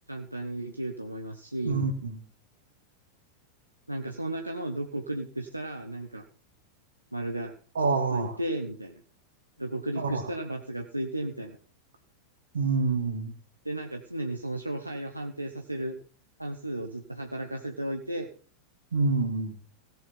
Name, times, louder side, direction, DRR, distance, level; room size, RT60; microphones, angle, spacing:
voice 1, 0.1-1.8 3.9-6.3 7.1-7.5 8.1-9.0 9.6-11.6 13.6-16.0 16.4-18.3, right 1 dB, 85° right, 3 dB, 1.0 m, -34 dB
voice 2, 1.7-2.2 7.7-8.3 10.0-10.3 12.5-13.3 18.9-19.6, right 4 dB, 65° right, 6 dB, 2.4 m, -27 dB
16.0 x 7.0 x 5.7 m, 0.43 s
figure-of-eight pair, 90°, 0 cm